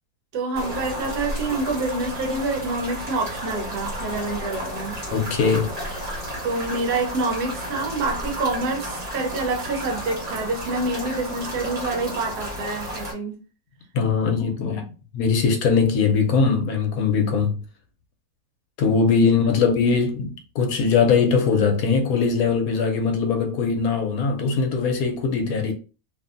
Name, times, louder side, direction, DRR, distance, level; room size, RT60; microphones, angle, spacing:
voice 1, 0.3-5.0 6.4-13.4 19.4-19.5, right 3 dB, 80° right, 1.2 m, -27 dB
sound 1, 0.5-13.1, equal, 35° right, 1.2 m, -32 dB
voice 2, 5.1-6.0 13.9-14.9 15.1-17.6 18.8-25.7, left 5 dB, 70° left, 1.0 m, -21 dB
2.7 x 2.6 x 2.4 m
omnidirectional pair, 1.7 m